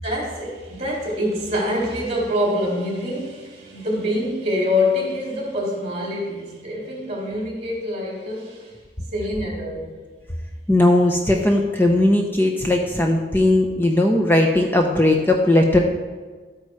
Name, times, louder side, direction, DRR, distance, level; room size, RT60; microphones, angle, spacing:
voice 1, 0.0-8.7 9.1-9.9, left 1 dB, 35° right, -2 dB, 3.8 m, -25 dB
voice 2, 10.7-15.8, left 1 dB, 10° left, 2 dB, 0.8 m, -18 dB
12.0 x 8.7 x 4.8 m, 1.4 s
head